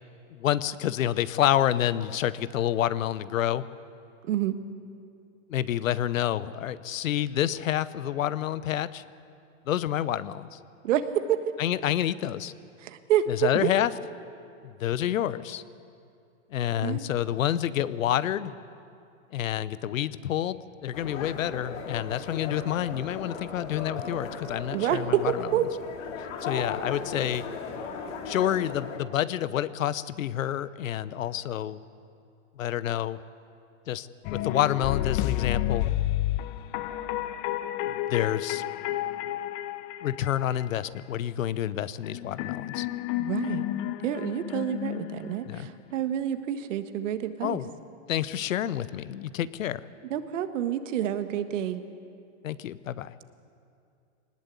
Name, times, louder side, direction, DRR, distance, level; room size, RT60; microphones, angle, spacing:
voice 1, 0.3-3.6 5.5-9.0 9.7-10.6 11.6-12.5 13.3-13.9 14.6-15.6 16.5-18.5 19.3-25.5 26.4-27.5 28.3-31.8 32.6-33.2 33.9-35.9 38.1-38.7 40.0-42.9 45.5-45.7 47.4-47.7 48.1-49.8 52.4-53.1, left 11 dB, 80° left, 16 dB, 0.9 m, -28 dB
voice 2, 4.2-4.6 10.8-11.4 12.8-13.7 16.8-17.1 24.7-25.7 43.2-43.7 44.0-47.6 50.1-51.8, right 10 dB, 65° right, 9 dB, 1.6 m, -28 dB
sound 1, 20.9-29.0, left 5 dB, 65° left, 3.5 m, -37 dB
sound 2, 34.2-40.6 42.0-45.7, left 13 dB, 40° left, 0.8 m, -31 dB
21.0 x 19.5 x 8.3 m, 2.5 s
hypercardioid pair, 125°, 39 cm